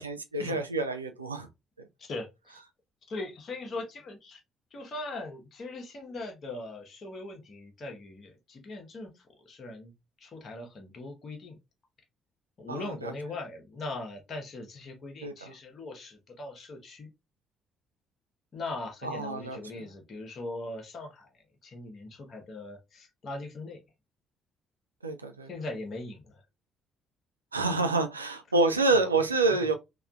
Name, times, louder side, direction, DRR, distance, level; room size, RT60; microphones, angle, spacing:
voice 1, 0.0-1.5 1.8-1.9 12.7-13.1 15.2-15.5 19.0-19.9 25.0-25.5 27.5-29.7, right 3 dB, 85° right, 0.3 m, -28 dB
voice 2, 2.0-2.6 3.1-4.4 4.7-11.6 12.6-17.1 18.5-23.8 25.5-26.4 28.9-29.0, left 2 dB, 45° left, 0.8 m, -40 dB
3.4 x 2.3 x 2.3 m
figure-of-eight pair, 45°, 0 cm